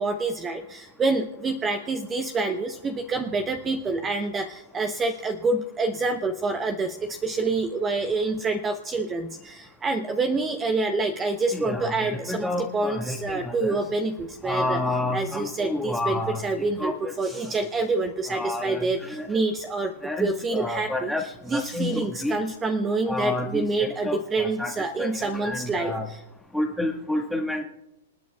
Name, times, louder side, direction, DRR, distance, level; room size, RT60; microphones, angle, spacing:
voice 1, 0.0-14.8 15.1-19.9 20.2-21.1 21.5-26.2, right 3 dB, 20° right, 7 dB, 0.8 m, -27 dB
voice 2, 11.5-13.8 14.4-17.5 18.3-19.4 20.0-22.4 23.0-26.1 26.5-27.6, left 2 dB, ahead, 1 dB, 1.7 m, -30 dB
27.0 x 9.4 x 2.4 m, 0.97 s
hypercardioid pair, 115°, 0 cm